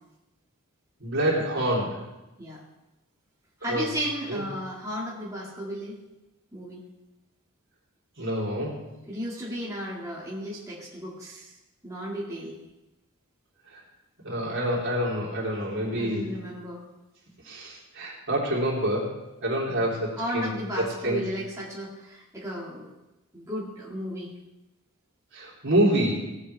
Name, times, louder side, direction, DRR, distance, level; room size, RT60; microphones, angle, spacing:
voice 1, 1.0-2.0 3.7-3.9 4.3-4.4 8.2-8.8 14.2-16.3 17.4-19.1 19.4-20.5 20.8-21.2 25.3-26.3, right 1 dB, 60° right, -5 dB, 3.6 m, -27 dB
voice 2, 3.6-6.0 6.5-6.8 9.1-11.6 11.8-12.6 15.9-16.8 19.7-19.9 20.1-22.9 23.3-24.3, equal, 15° right, -6 dB, 2.0 m, -34 dB
17.0 x 8.5 x 3.4 m, 0.99 s
head